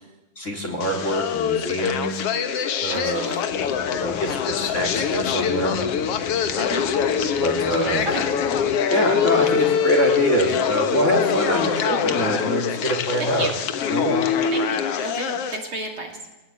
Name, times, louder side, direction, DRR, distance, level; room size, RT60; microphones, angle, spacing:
voice 1, 0.3-2.1 2.8-3.2 3.9-5.8 7.4-8.1 8.9-13.5 13.9-14.2, right 1 dB, 25° left, 1 dB, 3.4 m, -24 dB
sound 1, 0.8-15.6, left 7 dB, 60° left, 2.0 m, -24 dB
voice 2, 2.6-3.5 6.6-6.8 7.8-8.2 8.9-9.0 13.2-13.5 14.5-16.1, right 2 dB, 40° right, 1 dB, 3.3 m, -32 dB
sound 2, 3.5-8.8, left 7 dB, 75° left, 2.7 m, -37 dB
23.0 x 19.0 x 8.8 m, 1.0 s
omnidirectional pair, 3.5 m